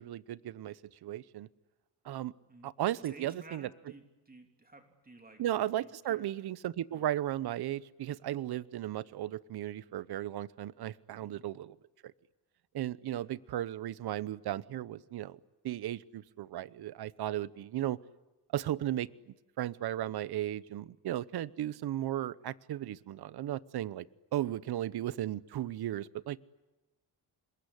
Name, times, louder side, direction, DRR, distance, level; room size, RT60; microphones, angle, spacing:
voice 1, 0.0-1.5 2.0-2.3 2.6-3.7 5.4-11.8 12.7-15.4 15.6-18.0 18.5-24.1 24.3-26.4, right 13 dB, 65° right, 18 dB, 0.9 m, -35 dB
voice 2, 3.0-5.4 5.8-6.3 6.9-7.1 11.1-11.5 13.1-13.2, right 2 dB, 20° right, 4 dB, 3.3 m, -55 dB
27.0 x 22.0 x 9.9 m, 1.1 s
cardioid pair, 105°, 41 cm